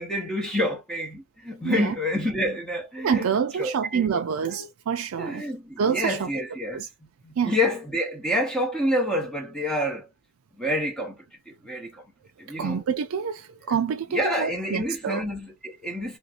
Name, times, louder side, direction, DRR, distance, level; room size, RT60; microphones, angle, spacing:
voice 1, 0.0-3.3 3.6-4.7 5.2-6.8 7.2-10.1 10.6-11.2 11.5-12.0 12.4-12.8 13.7-13.8 14.1-16.2, left 1 dB, 5° left, 0.9 m, -28 dB
voice 2, 1.6-1.9 3.0-5.5 5.8-6.3 6.7-6.9 7.4-7.5 12.5-15.2, right 7 dB, 65° right, 0.4 m, -27 dB
3.1 x 2.6 x 2.8 m
head